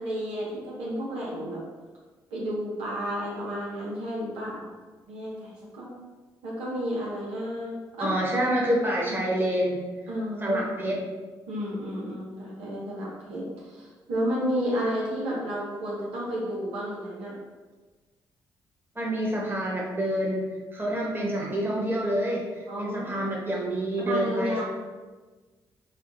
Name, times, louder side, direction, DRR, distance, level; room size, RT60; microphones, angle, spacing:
voice 1, 0.0-1.6 2.3-4.7 5.1-6.0 6.4-8.2 9.1-9.3 10.1-10.8 11.5-17.4 22.7-23.3 24.0-24.6, equal, 85° right, -5 dB, 0.9 m, -32 dB
voice 2, 8.0-9.8 10.4-11.0 18.9-20.4 20.7-24.6, right 1 dB, 20° right, -3 dB, 1.3 m, -27 dB
5.5 x 2.4 x 2.6 m, 1.3 s
hypercardioid pair, 50°, 10 cm